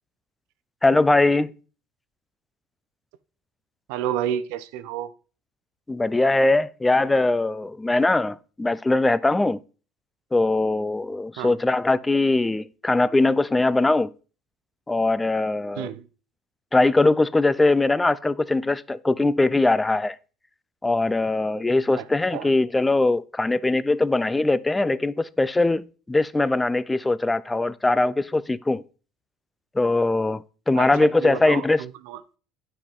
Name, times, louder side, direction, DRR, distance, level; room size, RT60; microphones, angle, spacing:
voice 1, 0.8-1.5 5.9-9.6 10.3-14.1 14.9-15.9 16.7-20.2 20.8-28.8 29.7-31.8, left 2 dB, 15° left, 0.4 m, -21 dB
voice 2, 3.9-5.1 11.4-11.6 15.8-16.1 21.9-22.1 22.3-22.5 30.8-32.2, right 10 dB, 75° right, 0.6 m, -30 dB
9.6 x 4.5 x 3.6 m
supercardioid pair, 80°, 0 cm